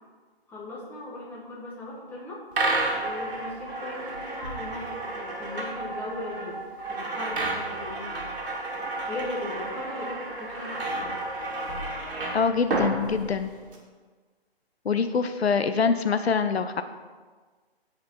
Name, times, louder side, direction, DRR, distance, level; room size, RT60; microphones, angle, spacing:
voice 1, 0.5-2.4 2.9-6.6 6.9-8.3 9.1-11.2, left 2 dB, 5° left, -5 dB, 1.5 m, -38 dB
sound 1, 2.5-13.8, right 2 dB, 55° right, 2.4 m, -31 dB
voice 2, 12.3-13.5 14.8-16.8, left 5 dB, 80° left, 9 dB, 0.8 m, -24 dB
15.0 x 5.1 x 4.6 m, 1.4 s
figure-of-eight pair, 150°, 31 cm